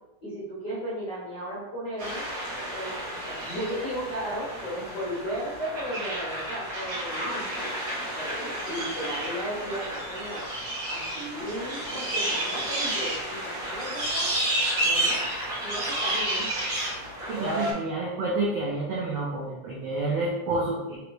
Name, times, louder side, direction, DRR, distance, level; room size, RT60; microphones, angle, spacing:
voice 1, 0.2-2.2 2.7-7.4 8.1-10.4 10.9-14.3 14.8-15.2 15.6-16.6, equal, 75° left, -7 dB, 0.9 m, -35 dB
sound 1, 2.0-17.7, right 1 dB, 55° right, 1.0 m, -31 dB
voice 2, 17.3-21.0, right 2 dB, 85° right, -4 dB, 1.4 m, -29 dB
5.0 x 3.3 x 3.1 m, 0.99 s
omnidirectional pair, 3.8 m